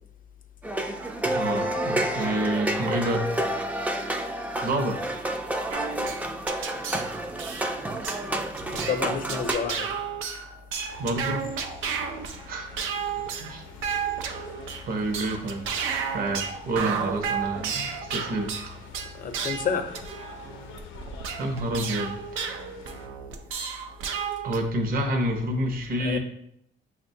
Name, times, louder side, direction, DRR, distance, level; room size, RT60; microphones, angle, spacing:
sound 1, 0.6-9.5, right 1 dB, 5° right, 0.3 m, -29 dB
voice 1, 1.3-3.3 4.6-5.1 11.0-11.5 12.5-12.8 13.2-13.6 14.9-15.7 16.1-18.5 21.4-22.2 24.4-26.2, right 1 dB, 45° right, 3 dB, 0.7 m, -28 dB
sound 2, 5.7-24.6, right 7 dB, 90° right, 0.4 m, -33 dB
voice 2, 8.7-9.9 14.4-14.6 19.1-20.0 26.0-26.2, left 6 dB, 45° left, 6 dB, 0.6 m, -29 dB
sound 3, 10.9-23.1, left 6 dB, 85° left, 0.5 m, -47 dB
5.9 x 2.2 x 2.7 m, 0.71 s
cardioid pair, 90°, 20 cm